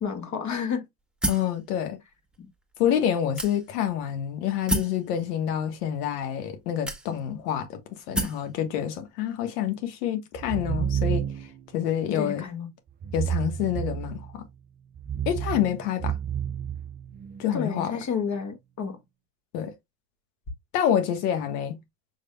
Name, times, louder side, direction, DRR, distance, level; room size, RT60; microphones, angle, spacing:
voice 1, 0.0-0.9 2.4-2.5 12.1-12.7 17.5-19.0, left 6 dB, 35° left, 1.7 m, -31 dB
sound 1, 1.2-1.6 2.3-2.4 3.4-3.9 4.7-5.0 6.0-6.1 6.9-7.4 8.1-8.5, right 1 dB, ahead, 1.5 m, -29 dB
voice 2, 1.3-2.0 2.8-7.8 8.1-11.3 11.7-12.4 13.1-14.4 15.2-16.1 17.4-17.9 19.5-19.7 20.7-21.8, left 10 dB, 75° left, 1.4 m, -27 dB
sound 2, 10.4-11.6 13.0-14.4 14.9-17.5, right 9 dB, 25° right, 0.4 m, -30 dB
6.2 x 3.4 x 2.2 m
hypercardioid pair, 95°, 47 cm